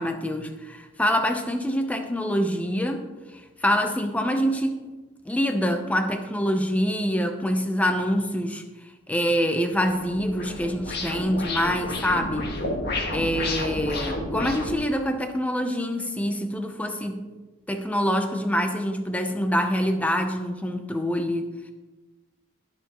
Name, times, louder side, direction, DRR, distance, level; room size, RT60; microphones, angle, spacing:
voice 1, 0.0-4.9 5.2-8.6 9.1-12.5 13.1-17.2 17.7-21.7, equal, 5° left, 6 dB, 0.7 m, -25 dB
sound 1, 9.7-14.7, left 2 dB, 50° left, 1.7 m, -31 dB
20.5 x 7.0 x 3.0 m, 1.2 s
head